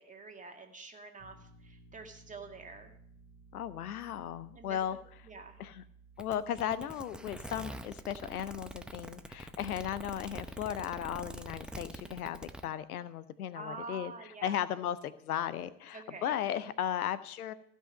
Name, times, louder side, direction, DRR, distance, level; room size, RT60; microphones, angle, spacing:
voice 1, 0.0-2.9 4.6-5.6 13.5-14.6 15.9-16.3, right 3 dB, 15° right, 3 dB, 2.0 m, -47 dB
sound 1, 1.2-11.7, right 4 dB, 30° left, 3.5 m, -59 dB
voice 2, 3.5-5.0 5.6-5.8 6.2-14.1 14.4-17.5, left 10 dB, 80° left, 16 dB, 0.7 m, -36 dB
sound 2, 6.2-12.6, right 1 dB, ahead, 0.6 m, -45 dB
15.5 x 5.5 x 6.5 m, 0.68 s
hypercardioid pair, 80°, 44 cm